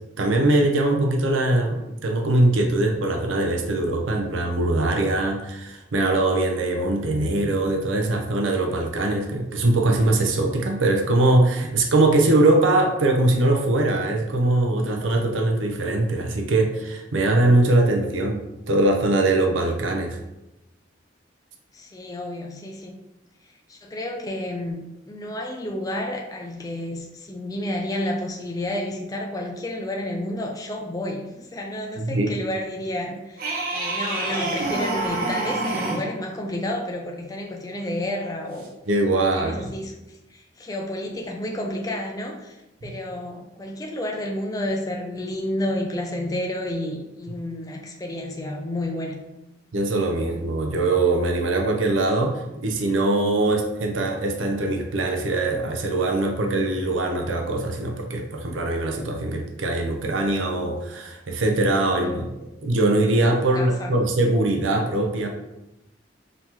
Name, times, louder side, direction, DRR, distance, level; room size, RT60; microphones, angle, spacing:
voice 1, 0.2-20.2 32.0-32.3 38.9-39.7 42.8-43.0 49.7-62.3 62.6-65.3, right 2 dB, 85° right, 2 dB, 0.6 m, -22 dB
voice 2, 21.7-23.0 23.4-38.7 39.3-49.2 61.9-62.2 63.5-64.0, left 1 dB, 20° left, 0 dB, 0.4 m, -31 dB
sound 1, 33.4-36.1 38.6-38.7, right 2 dB, 50° right, 0.8 m, -27 dB
5.4 x 2.9 x 2.9 m, 0.95 s
head